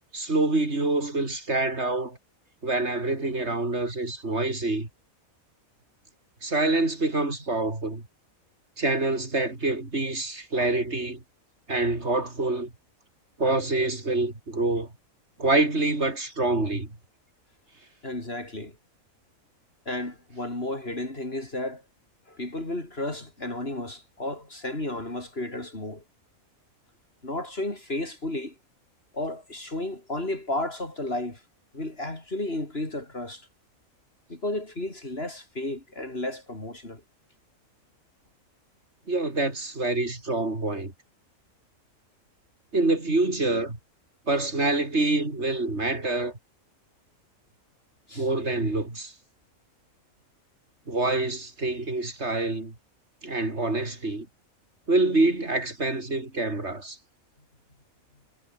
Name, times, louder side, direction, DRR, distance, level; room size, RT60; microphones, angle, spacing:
voice 1, 0.1-2.2 2.6-4.9 6.4-8.0 8.8-11.2 11.7-12.7 13.4-14.9 15.4-16.9 39.1-40.9 42.7-43.8 44.3-46.3 48.1-49.1 50.9-52.7 53.2-54.3 54.9-57.0, right 2 dB, 50° right, 4.9 m, -26 dB
voice 2, 18.0-18.8 19.8-21.8 22.3-26.0 27.2-28.6 29.1-31.4 31.7-33.5 34.3-37.0 48.1-48.3, left 1 dB, 45° left, 4.8 m, -33 dB
omnidirectional pair, 1.4 m